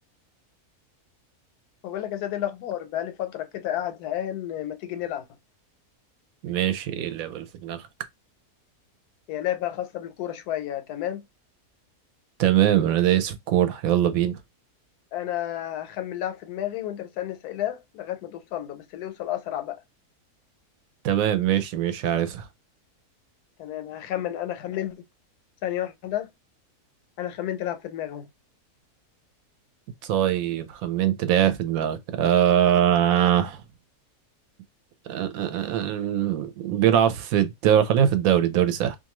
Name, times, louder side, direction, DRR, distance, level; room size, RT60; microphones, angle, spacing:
voice 1, 1.8-5.3 9.3-11.2 15.1-19.8 23.6-25.0 25.6-26.3 27.2-28.3, left 12 dB, 90° left, 1.1 m, -31 dB
voice 2, 6.4-7.8 12.4-14.4 21.0-22.5 30.0-33.6 35.1-39.0, right 10 dB, 70° right, 1.0 m, -22 dB
2.6 x 2.5 x 2.9 m
omnidirectional pair, 1.6 m